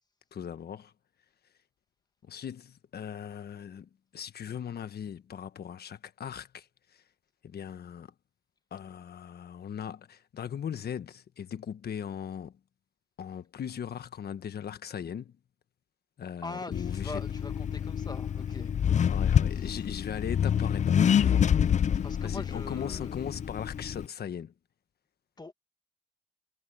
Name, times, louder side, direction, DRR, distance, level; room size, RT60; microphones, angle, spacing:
voice 1, 0.3-0.9 2.2-7.0 7.4-8.1 8.7-12.6 13.2-15.4 16.2-17.2 19.1-21.5 21.9-24.5, left 8 dB, 55° left, 1.4 m, -39 dB
voice 2, 16.4-19.2 19.5-19.8 21.2-21.7 22.0-23.1 25.4-25.5, left 3 dB, 20° left, 1.6 m, -43 dB
Accelerating revving vroom, 16.7-24.1, left 8 dB, 35° left, 0.5 m, -27 dB
cardioid pair, 90°, 20 cm